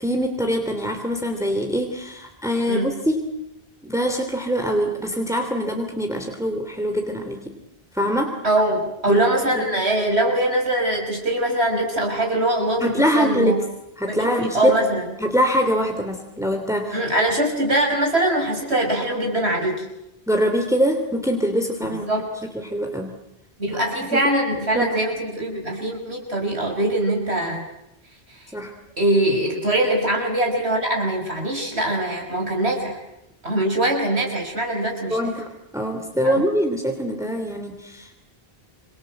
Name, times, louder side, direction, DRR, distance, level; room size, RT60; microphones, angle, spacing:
voice 1, 0.0-3.3 3.8-7.5 7.9-8.3 9.1-9.2 9.5-9.6 12.8-13.6 14.0-14.8 15.2-17.0 20.3-22.1 22.5-23.1 24.1-24.2 24.5-24.9 28.5-28.7 35.1-35.5 35.7-38.2, equal, 5° right, 4 dB, 3.1 m, -23 dB
voice 2, 8.4-13.6 14.1-15.0 16.9-19.9 22.1-22.3 23.6-27.6 28.3-28.4 29.0-33.0 33.4-35.3 36.2-36.3, right 1 dB, 85° right, 0 dB, 5.8 m, -22 dB
28.0 x 27.0 x 7.9 m, 0.86 s
omnidirectional pair, 1.1 m